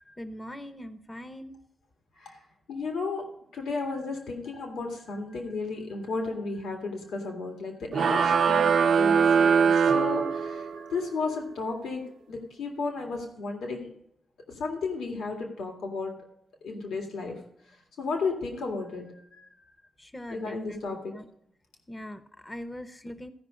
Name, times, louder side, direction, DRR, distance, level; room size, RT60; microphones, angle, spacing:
voice 1, 0.2-1.6 20.0-21.3 21.9-23.3, left 1 dB, 20° left, 10 dB, 0.9 m, -41 dB
voice 2, 2.7-3.2 3.5-12.0 12.3-13.9 14.5-16.1 16.6-17.4 18.0-19.5 20.3-21.2, left 4 dB, 80° left, 2 dB, 2.0 m, -33 dB
sound 1, 7.9-10.8, right 6 dB, 70° right, 0.6 m, -22 dB
15.5 x 5.3 x 5.1 m, 0.76 s
supercardioid pair, 50°, 0 cm